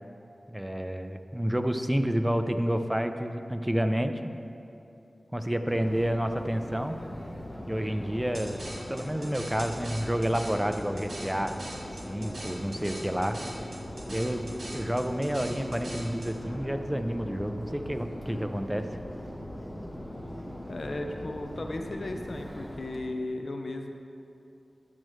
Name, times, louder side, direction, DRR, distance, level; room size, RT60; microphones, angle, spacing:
voice 1, 0.5-4.2 5.3-7.0 7.7-8.6 8.9-11.5 12.1-13.4 14.1-18.9, equal, 10° right, 7 dB, 0.4 m, -29 dB
Subway metro underground, 5.7-23.0, equal, 20° left, 1.0 m, -40 dB
sound 1, 8.3-16.3, right 1 dB, 75° right, 1.7 m, -43 dB
voice 2, 20.7-23.9, left 2 dB, 60° left, 4 dB, 0.6 m, -35 dB
10.5 x 7.6 x 3.1 m, 2.8 s
wide cardioid pair, 85°, 0 cm